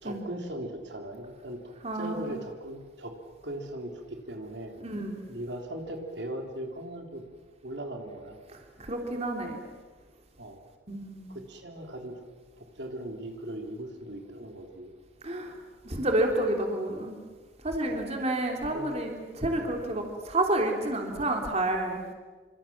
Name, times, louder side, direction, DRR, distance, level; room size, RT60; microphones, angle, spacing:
voice 1, 0.0-3.1 3.4-4.8 5.3-7.2 7.6-8.4 10.4-10.6 11.3-12.1 12.6-14.9 17.9-18.2 18.6-18.9, right 1 dB, 65° right, 3 dB, 3.6 m, -39 dB
voice 2, 1.8-2.3 4.8-5.2 8.8-9.6 10.9-11.3 15.2-15.6 15.8-17.2 17.6-22.0, right 1 dB, 35° right, 2 dB, 3.2 m, -29 dB
27.5 x 26.0 x 7.3 m, 1.4 s
head